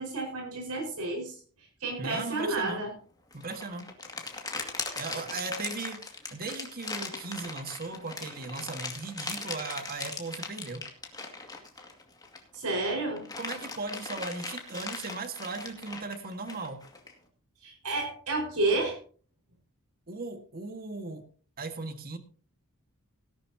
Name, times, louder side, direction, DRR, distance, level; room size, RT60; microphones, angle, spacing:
voice 1, 0.0-1.3 1.8-2.9 12.5-13.2 17.6-19.0, right 2 dB, 85° right, 0 dB, 5.0 m, -30 dB
voice 2, 2.0-2.8 3.3-3.9 4.9-6.0 6.3-10.8 13.4-16.8 20.1-21.2 21.6-22.2, right 3 dB, 40° right, 7 dB, 1.7 m, -37 dB
sound 1, 3.3-12.6 12.9-17.1, left 3 dB, 15° left, 2.1 m, -39 dB
17.5 x 11.5 x 2.8 m, 0.41 s
head